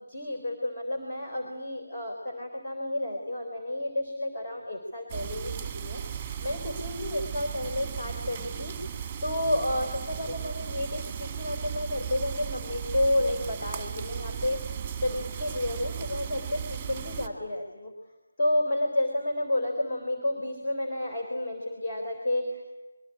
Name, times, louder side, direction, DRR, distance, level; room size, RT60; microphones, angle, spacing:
voice 1, 0.1-5.5 5.8-6.0 6.4-8.8 9.2-14.6 15.0-17.9 18.4-22.8, left 1 dB, 35° left, 1 dB, 3.8 m, -30 dB
sound 1, 5.1-17.3, right 8 dB, 10° right, 1.8 m, -36 dB
25.0 x 23.0 x 9.8 m, 1.1 s
figure-of-eight pair, 165°, 0 cm